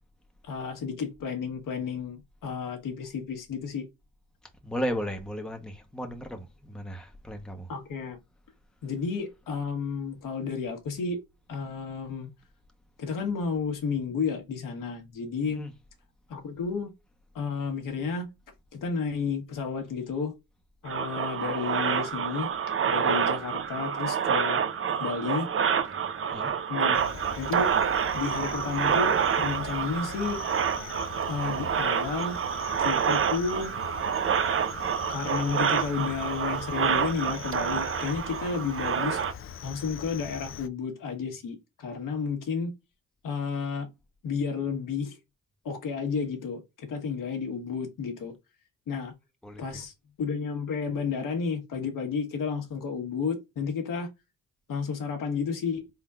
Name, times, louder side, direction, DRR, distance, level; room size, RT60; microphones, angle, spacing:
voice 1, 0.4-3.8 7.7-8.2 8.8-11.2 11.5-12.3 13.0-15.6 16.3-16.9 17.3-18.3 18.7-20.3 20.8-22.5 22.9-24.6 25.0-25.5 26.7-27.0 27.4-27.7 28.1-30.4 31.3-32.4 32.8-33.7 35.1-39.2 39.6-42.7 43.2-43.9 44.2-45.2 45.6-48.3 48.9-49.1 49.6-49.9 50.2-54.1 54.7-55.8, left 5 dB, 65° left, 1.3 m, -32 dB
voice 2, 4.6-7.7 15.5-15.7 26.3-26.5 49.4-49.8, equal, ahead, 0.9 m, -35 dB
sound 1, 20.9-39.3, right 7 dB, 35° right, 0.7 m, -28 dB
Cricket, 26.9-40.7, left 8 dB, 40° left, 0.5 m, -42 dB
4.1 x 3.8 x 2.4 m
supercardioid pair, 65°, 36 cm